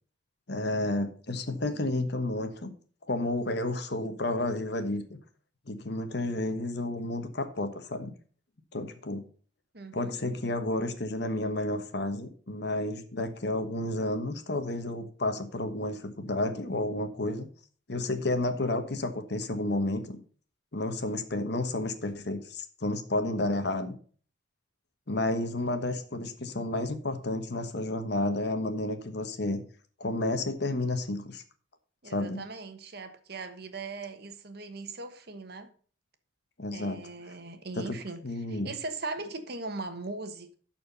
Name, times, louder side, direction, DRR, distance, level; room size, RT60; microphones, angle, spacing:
voice 1, 0.5-2.7 3.1-5.2 5.7-8.1 8.7-9.3 9.9-17.5 17.9-20.2 20.7-23.9 25.1-29.6 30.0-31.4 32.1-32.4 36.6-37.0 37.8-38.0 38.2-38.7, left 2 dB, 60° left, 1.2 m, -31 dB
voice 2, 9.7-10.2 32.0-35.7 36.7-38.2 38.5-40.6, right 3 dB, 55° right, 1.2 m, -39 dB
12.0 x 4.5 x 5.6 m
head